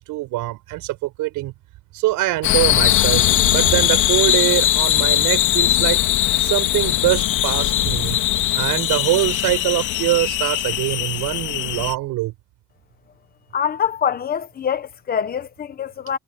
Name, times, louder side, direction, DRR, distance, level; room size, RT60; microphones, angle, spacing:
voice 1, 0.0-1.5 1.9-6.0 6.4-8.2 8.5-12.3, right 18 dB, 80° right, 5.8 m, -23 dB
sound 1, 2.4-11.9, left 14 dB, 70° left, 2.7 m, -20 dB
voice 2, 13.5-16.2, left 8 dB, 30° left, 1.1 m, -24 dB
cardioid pair, 175°, 32 cm